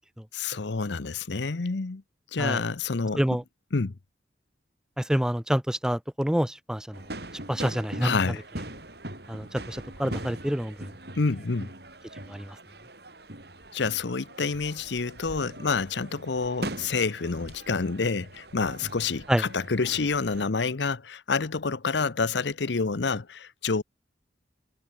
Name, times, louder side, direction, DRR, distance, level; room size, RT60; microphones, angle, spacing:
voice 1, 0.3-2.0 2.3-3.4 3.7-4.0 8.0-8.4 11.1-11.7 13.7-23.8, left 4 dB, 70° left, 0.8 m, -28 dB
voice 2, 5.0-7.0 7.5-8.1 9.3-10.7 12.3-12.5 19.3-19.4, equal, 5° right, 0.5 m, -27 dB
sound 1, 6.9-20.5, right 1 dB, 55° right, 7.3 m, -41 dB
head